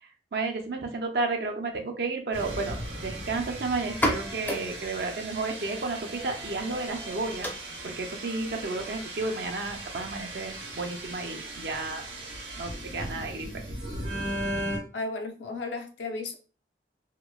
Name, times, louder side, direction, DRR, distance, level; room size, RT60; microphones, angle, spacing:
voice 1, 0.0-7.5 7.8-12.0 12.5-13.5, right 3 dB, 60° right, 0.5 m, -32 dB
sound 1, 2.3-14.8, right 1 dB, 85° right, 0.9 m, -37 dB
sound 2, 3.8-11.3, equal, 10° left, 0.4 m, -37 dB
voice 2, 14.9-16.3, left 3 dB, 90° left, 0.5 m, -34 dB
2.9 x 2.1 x 2.3 m
head